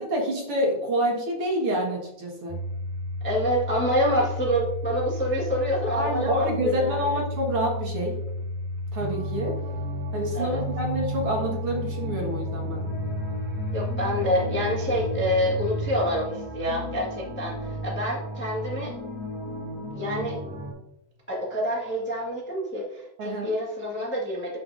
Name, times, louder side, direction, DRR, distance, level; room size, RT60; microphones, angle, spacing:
voice 1, 0.1-2.6 5.9-8.2 8.9-9.6 10.1-12.9 23.2-23.5, equal, 50° right, -1 dB, 2.4 m, -27 dB
Domestic sounds home sounds, 2.5-19.4, left 2 dB, 80° right, 2.6 m, -33 dB
voice 2, 3.2-7.2 10.3-10.6 13.7-18.9 19.9-20.4 21.3-24.6, equal, 15° left, -3 dB, 0.4 m, -27 dB
sound 1, 9.0-20.7, right 1 dB, 15° right, 2.5 m, -35 dB
12.5 x 5.9 x 2.7 m, 0.83 s
omnidirectional pair, 3.6 m